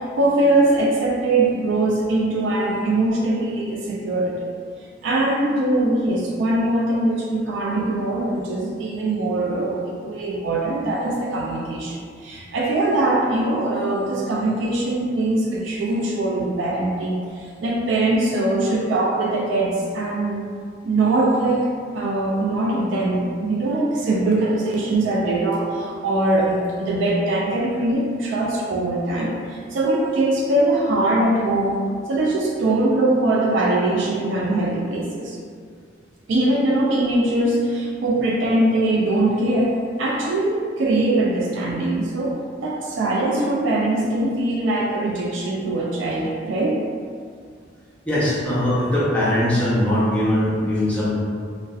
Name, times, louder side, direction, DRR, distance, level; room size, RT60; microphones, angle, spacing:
voice 1, 0.2-4.5 5.0-20.5 20.8-21.7 21.9-31.8 32.1-35.4 36.3-42.3 42.6-46.8, right 2 dB, 70° right, -3 dB, 0.3 m, -22 dB
voice 2, 48.1-51.1, left 1 dB, 5° left, -9 dB, 0.5 m, -20 dB
2.6 x 2.0 x 2.3 m, 2.1 s
head